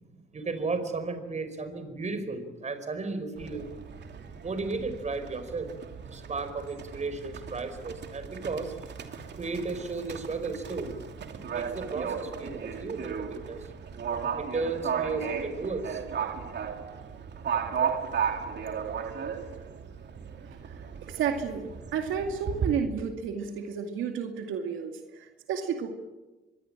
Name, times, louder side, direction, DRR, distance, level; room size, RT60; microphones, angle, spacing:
voice 1, 0.1-3.7 4.4-5.7 6.1-8.8 9.4-13.7 14.4-16.0, right 3 dB, 35° right, 9 dB, 4.9 m, -34 dB
Livestock farm animals working animals, 3.4-22.7, right 7 dB, 60° right, 3.0 m, -35 dB
voice 2, 21.0-25.9, right 7 dB, 85° right, 5 dB, 2.4 m, -32 dB
25.0 x 22.5 x 9.0 m, 1.1 s
cardioid pair, 90°, 20 cm